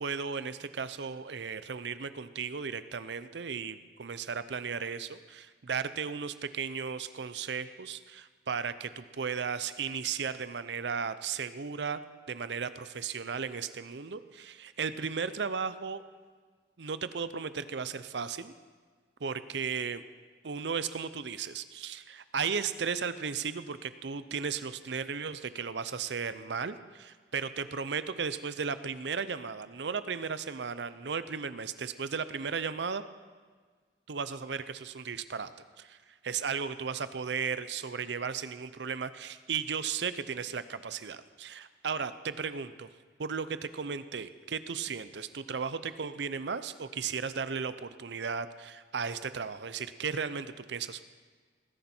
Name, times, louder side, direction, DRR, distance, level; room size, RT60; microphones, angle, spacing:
voice 1, 0.0-12.0 12.3-16.0 16.8-18.5 19.2-20.0 20.4-33.0 34.1-35.5 35.8-36.0 36.2-42.9 43.2-51.0, right 6 dB, 80° right, 13 dB, 0.6 m, -35 dB
19.0 x 10.5 x 4.4 m, 1.5 s
head